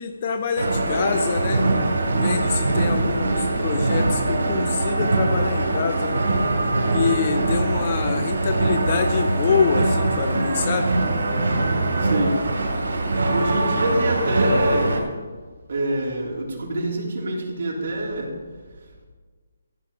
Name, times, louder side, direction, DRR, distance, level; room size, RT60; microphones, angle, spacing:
voice 1, 0.0-1.7 2.1-6.3 6.9-10.9, left 6 dB, 35° left, 7 dB, 0.6 m, -25 dB
sound 1, 0.6-15.0, right 2 dB, 85° right, 2.7 m, -22 dB
voice 2, 12.0-12.4 13.3-15.1 15.7-18.3, right 1 dB, 50° right, -3 dB, 3.5 m, -25 dB
14.0 x 7.5 x 4.9 m, 1.5 s
hypercardioid pair, 170°, 0 cm